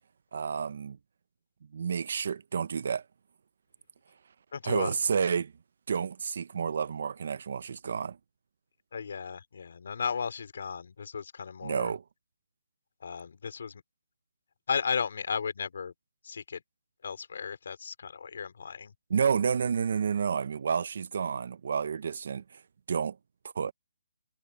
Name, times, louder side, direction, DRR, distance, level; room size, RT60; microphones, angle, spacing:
voice 1, 0.3-1.0 1.7-3.0 4.6-5.5 5.9-8.2 11.6-12.0 19.1-22.6 22.9-23.2 23.6-23.7, right 6 dB, 40° right, 0.6 m, -30 dB
voice 2, 4.5-4.9 8.9-11.9 13.0-13.8 14.7-15.9 16.2-16.6 17.0-18.9, left 6 dB, 45° left, 3.1 m, -35 dB
hypercardioid pair, 180°, 0 cm